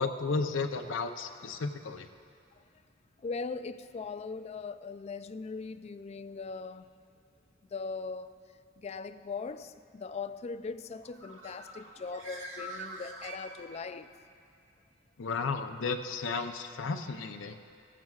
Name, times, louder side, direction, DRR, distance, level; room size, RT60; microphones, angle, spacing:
voice 1, 0.0-2.1 15.2-17.8, left 4 dB, 75° left, 0.6 m, -33 dB
voice 2, 3.2-6.9 7.7-8.3 8.8-14.1, left 4 dB, 35° left, 0.3 m, -40 dB
Bird, 11.0-14.0, right 1 dB, 75° right, 1.6 m, -45 dB
17.0 x 15.0 x 2.4 m
head